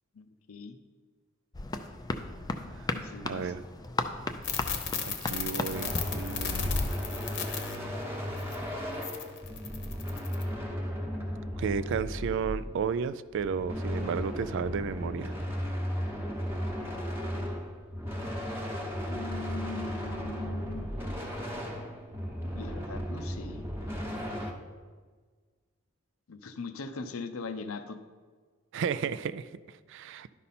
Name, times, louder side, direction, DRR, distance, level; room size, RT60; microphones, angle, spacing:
voice 1, 0.1-0.8 2.9-3.5 19.1-20.9 22.5-23.7 26.3-28.0, left 4 dB, 85° left, 9 dB, 0.7 m, -40 dB
sound 1, 1.5-7.0, left 2 dB, 20° left, 0.4 m, -35 dB
voice 2, 3.2-3.6 5.1-6.8 11.6-15.4 28.7-30.4, right 6 dB, 60° right, 16 dB, 0.3 m, -33 dB
sound 2, 4.4-7.8 8.4-8.6 9.0-10.4, left 7 dB, 60° left, 0.9 m, -35 dB
sound 3, 5.7-12.9 13.3-24.5, equal, 10° right, 1.0 m, -35 dB
11.5 x 5.4 x 4.2 m, 1.5 s
head